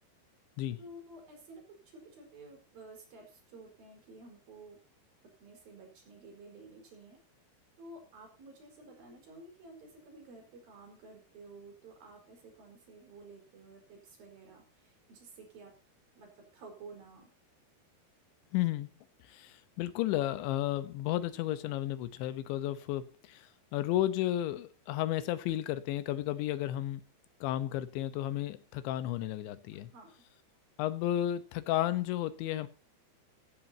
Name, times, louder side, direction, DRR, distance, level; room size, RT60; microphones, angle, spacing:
voice 1, 0.8-4.8 5.4-7.2 7.8-15.7 16.1-17.3 29.9-30.1, right 2 dB, 55° right, 6.5 m, -52 dB
voice 2, 18.5-18.9 19.3-27.0 27.4-29.9 30.8-32.7, left 13 dB, 90° left, 3.4 m, -33 dB
16.5 x 14.0 x 2.9 m
omnidirectional pair, 5.1 m